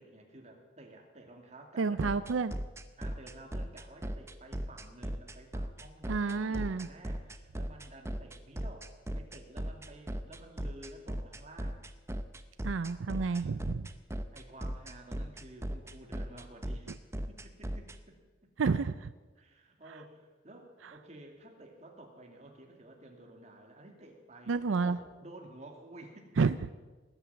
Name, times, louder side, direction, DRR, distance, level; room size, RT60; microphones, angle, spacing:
voice 1, 0.0-2.2 3.0-11.8 13.2-13.4 14.3-17.0 17.3-18.2 19.4-24.6 24.8-26.3, right 1 dB, 35° right, 2 dB, 2.5 m, -52 dB
voice 2, 1.8-2.5 6.1-6.9 12.6-13.9 18.6-19.1 24.5-25.0 26.4-26.6, right 4 dB, 90° right, 14 dB, 0.5 m, -30 dB
sound 1, 2.0-18.0, equal, 15° right, 0.7 m, -37 dB
19.5 x 9.1 x 7.5 m, 1.2 s
head